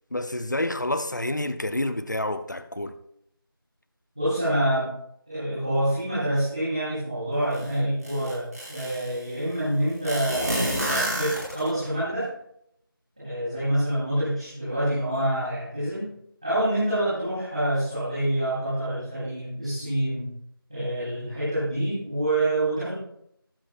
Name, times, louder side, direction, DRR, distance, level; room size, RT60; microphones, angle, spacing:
voice 1, 0.1-3.0, left 1 dB, 50° left, 0.8 m, -28 dB
voice 2, 4.1-4.9 5.3-12.3 13.2-16.1 16.4-20.3 20.7-22.9, right 1 dB, 15° right, 3.1 m, -27 dB
sound 1, 7.5-7.6 8.0-9.2 10.0-11.9, right 1 dB, 45° right, 4.6 m, -28 dB
21.0 x 7.5 x 2.4 m
figure-of-eight pair, 180°, 12 cm